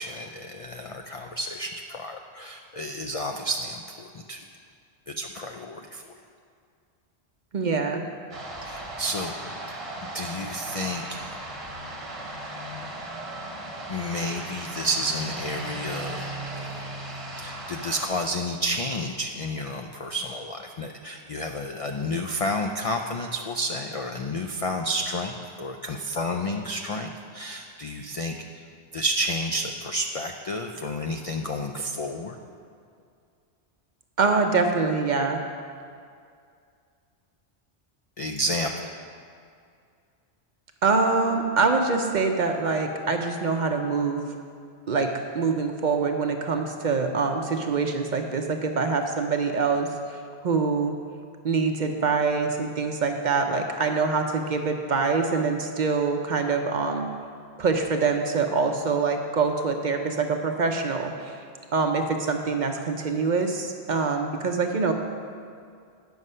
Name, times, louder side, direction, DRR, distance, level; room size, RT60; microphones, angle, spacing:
voice 1, 0.0-4.4 5.1-6.0 8.6-9.3 10.1-11.3 13.9-16.3 16.5-16.7 17.4-28.6 28.9-32.4 38.2-38.9, equal, 60° left, 3 dB, 0.3 m, -31 dB
voice 2, 7.5-8.0 34.2-35.4 40.8-44.2 44.9-45.1 45.3-49.9 50.4-50.9 51.4-57.1 57.6-61.4 61.7-64.9, right 4 dB, 50° right, 4 dB, 0.7 m, -24 dB
sound 1, 8.3-18.1, right 1 dB, 30° right, 0.9 m, -36 dB
9.4 x 6.3 x 5.4 m, 2.3 s
omnidirectional pair, 1.1 m